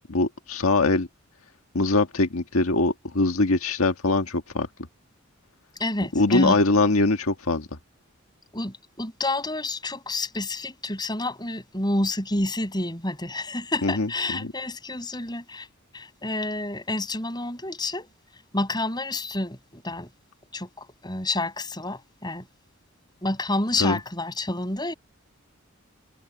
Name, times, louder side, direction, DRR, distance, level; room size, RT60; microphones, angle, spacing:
voice 1, 0.1-1.1 1.7-4.7 6.1-7.7 13.8-14.5 23.8-24.0, left 2 dB, 85° left, 1.7 m, -22 dB
voice 2, 5.8-6.6 8.5-15.7 15.9-18.1 18.5-20.1 20.5-22.5 23.2-24.9, left 2 dB, 20° left, 7.4 m, -29 dB
head